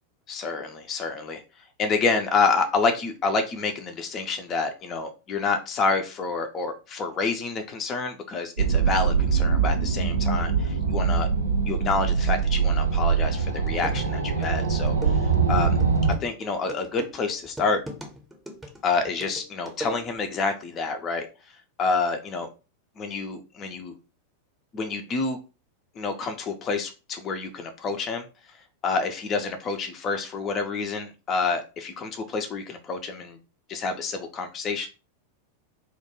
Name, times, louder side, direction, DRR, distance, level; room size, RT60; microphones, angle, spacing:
voice 1, 0.3-1.4 1.8-11.3 11.7-15.7 16.2-17.8 18.8-21.3 21.8-22.5 23.0-23.9 24.7-25.4 26.0-28.2 28.8-33.4 33.7-34.9, left 4 dB, 30° left, 6 dB, 0.4 m, -28 dB
sound 1, 8.6-16.1, right 5 dB, 75° right, 0.4 m, -23 dB
sound 2, 13.2-13.3 13.7-20.4, right 1 dB, 10° right, 0.7 m, -41 dB
2.2 x 2.2 x 2.9 m, 0.30 s
figure-of-eight pair, 90°, 0 cm